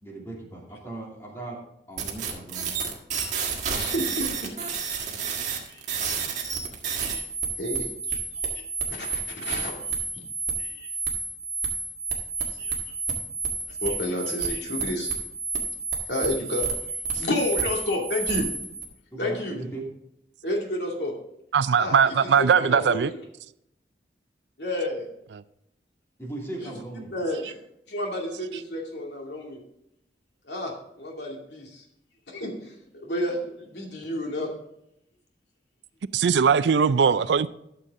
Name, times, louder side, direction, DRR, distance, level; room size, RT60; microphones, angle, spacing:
voice 1, 0.0-1.6 1.9-2.8 19.1-19.8 26.2-27.1, right 2 dB, 15° left, -3 dB, 2.7 m, -38 dB
sound 1, 2.0-18.8, right 5 dB, 40° right, 1.7 m, -30 dB
voice 2, 3.7-5.1 5.7-6.1 7.0-7.2 7.6-8.4 8.9-9.9 10.6-10.9 12.4-13.0 13.8-15.1 16.1-16.7 17.1-18.5 19.2-19.6 20.4-21.1 21.8-23.1 24.6-25.1 26.6-26.7 27.1-27.5 27.9-29.6 30.5-31.8 32.3-34.5, left 1 dB, 75° left, 0 dB, 2.4 m, -31 dB
voice 3, 21.5-23.1 25.3-25.4 36.1-37.5, right 6 dB, 80° right, 16 dB, 0.4 m, -20 dB
13.0 x 6.9 x 3.7 m, 0.79 s
head